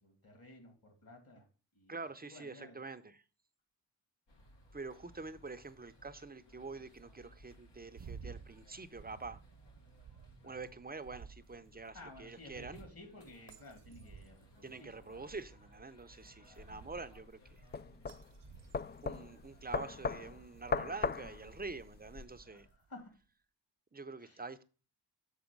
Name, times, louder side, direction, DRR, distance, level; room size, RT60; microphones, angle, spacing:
voice 1, 0.0-1.4 1.7-2.8 8.2-8.4 10.4-10.6 11.9-15.4 16.5-16.7 22.4-23.1 24.2-24.4, left 2 dB, 50° left, 2.6 m, -55 dB
voice 2, 1.9-3.2 4.7-9.4 10.4-12.8 14.6-17.4 19.0-22.7 23.9-24.6, right 3 dB, 20° right, 0.7 m, -46 dB
sound 1, 4.3-22.7, equal, 70° left, 1.6 m, -62 dB
sound 2, 7.9-23.0, right 6 dB, 65° right, 1.0 m, -56 dB
sound 3, 16.6-22.2, left 5 dB, 25° left, 0.3 m, -39 dB
7.3 x 4.1 x 5.3 m
cardioid pair, 50°, 44 cm